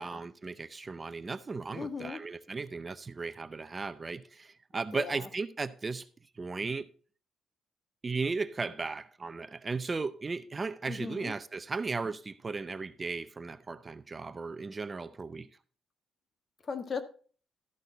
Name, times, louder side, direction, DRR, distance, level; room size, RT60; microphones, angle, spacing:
voice 1, 0.0-6.1 6.3-6.9 8.0-15.5, right 4 dB, 30° right, 0.6 m, -36 dB
voice 2, 1.7-2.2 4.9-5.3 10.9-11.3 16.6-17.0, left 5 dB, 45° left, 1.4 m, -38 dB
13.0 x 6.4 x 4.0 m
cardioid pair, 90°, 0 cm